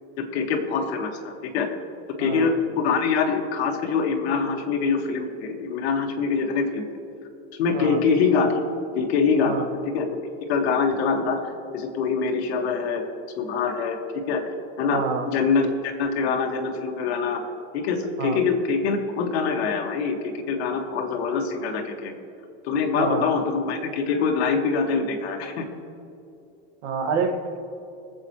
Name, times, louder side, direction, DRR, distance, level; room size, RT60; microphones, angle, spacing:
voice 1, 0.2-1.7 2.2-6.9 7.6-8.6 9.0-9.7 9.9-10.1 10.5-11.4 11.7-13.0 13.4-14.4 14.8-17.4 17.7-22.1 22.6-25.7, left 5 dB, 75° left, 2 dB, 1.9 m, -24 dB
voice 2, 2.2-2.5 7.7-8.0 9.4-9.7 14.9-15.3 18.2-18.4 22.9-23.3 26.8-27.6, right 5 dB, 90° right, 3 dB, 1.9 m, -27 dB
23.0 x 7.9 x 3.2 m, 2.6 s
supercardioid pair, 180°, 32 cm